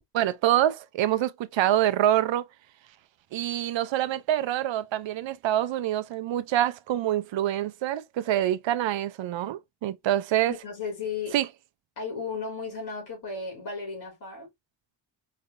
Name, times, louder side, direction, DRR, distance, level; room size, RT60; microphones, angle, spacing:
voice 1, 0.1-2.5 3.3-10.5 11.3-11.5, right 12 dB, 75° right, 0.6 m, -26 dB
voice 2, 10.5-11.4 12.0-14.5, left 4 dB, 55° left, 3.0 m, -34 dB
4.8 x 3.4 x 2.5 m
wide cardioid pair, 155°, 45 cm